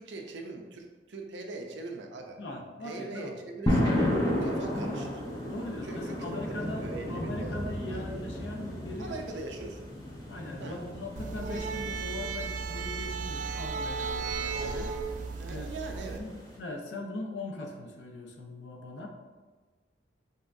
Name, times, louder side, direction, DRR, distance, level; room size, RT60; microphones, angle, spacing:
voice 1, 0.0-2.4 2.8-4.0 4.4-5.2 5.8-7.5 7.9-8.1 9.0-9.9 10.6-10.8 15.4-16.2, right 2 dB, 80° right, 3 dB, 0.6 m, -41 dB
voice 2, 2.4-3.4 4.4-5.0 5.5-9.2 10.3-14.9 15.2-19.1, left 2 dB, 75° left, 2 dB, 0.7 m, -41 dB
sound 1, 3.7-16.6, left 1 dB, 20° left, 0.9 m, -34 dB
sound 2, 11.2-16.2, right 5 dB, 45° right, 0.3 m, -35 dB
5.5 x 3.5 x 2.6 m, 1.4 s
head